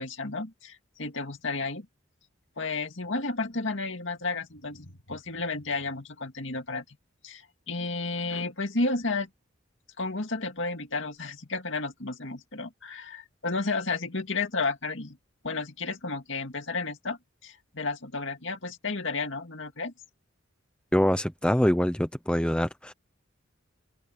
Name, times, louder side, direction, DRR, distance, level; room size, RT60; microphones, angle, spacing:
voice 1, 0.0-1.9 2.6-6.8 7.2-9.3 10.0-15.2 15.4-19.9, left 3 dB, 60° left, 2.4 m, -32 dB
voice 2, 20.9-22.9, equal, 5° left, 0.7 m, -24 dB
head